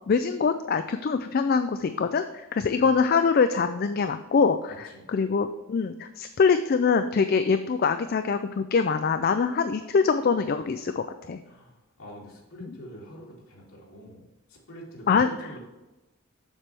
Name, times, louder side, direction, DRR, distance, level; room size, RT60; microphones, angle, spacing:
voice 1, 0.1-11.4 12.6-12.7 15.1-15.3, left 5 dB, 45° left, 9 dB, 0.3 m, -24 dB
voice 2, 4.7-5.1 11.5-15.6, equal, 85° left, -4 dB, 2.8 m, -46 dB
7.3 x 6.8 x 3.4 m, 1.1 s
head